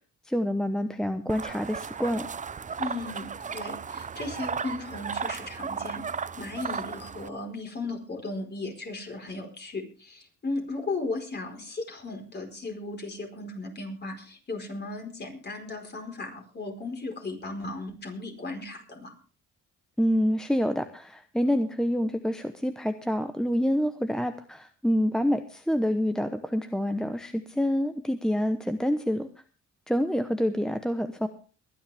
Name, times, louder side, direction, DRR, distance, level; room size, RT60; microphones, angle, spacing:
voice 1, 0.3-2.3 20.0-29.3 29.9-31.3, equal, ahead, 8 dB, 0.9 m, -27 dB
sound 1, 1.3-7.3, right 6 dB, 25° right, 0.6 m, -35 dB
voice 2, 2.8-19.1, left 2 dB, 35° left, 3 dB, 4.5 m, -36 dB
22.5 x 10.5 x 3.5 m, 0.39 s
cardioid pair, 90°, 30 cm